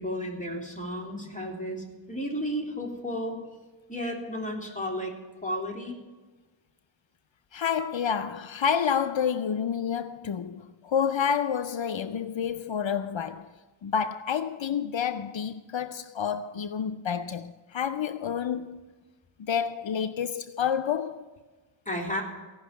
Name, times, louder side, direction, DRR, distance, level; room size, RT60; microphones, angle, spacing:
voice 1, 0.0-3.4 3.9-5.1 5.4-6.0 21.8-22.2, equal, 15° left, 3.2 m, -33 dB
voice 2, 7.5-13.5 13.8-18.8 19.4-21.3, left 7 dB, 80° left, 0.6 m, -29 dB
16.5 x 6.0 x 9.2 m
wide cardioid pair, 45°, 45 cm